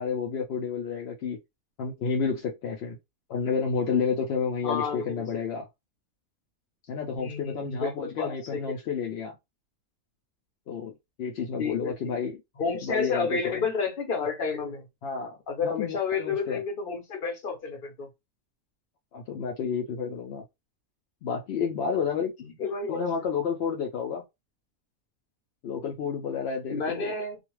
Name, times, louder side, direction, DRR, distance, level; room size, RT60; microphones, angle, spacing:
voice 1, 0.0-1.4 1.8-3.0 3.3-5.7 6.9-9.4 10.7-10.9 11.2-12.4 12.8-13.7 15.0-16.6 19.1-20.4 21.2-22.3 22.9-24.2 25.6-27.1, left 6 dB, 65° left, 0.6 m, -30 dB
voice 2, 4.6-5.3 7.1-8.6 11.6-12.2 12.6-14.8 15.5-18.1 22.4-23.0 26.7-27.4, left 5 dB, 45° left, 0.9 m, -30 dB
2.5 x 2.2 x 3.0 m
omnidirectional pair, 1.5 m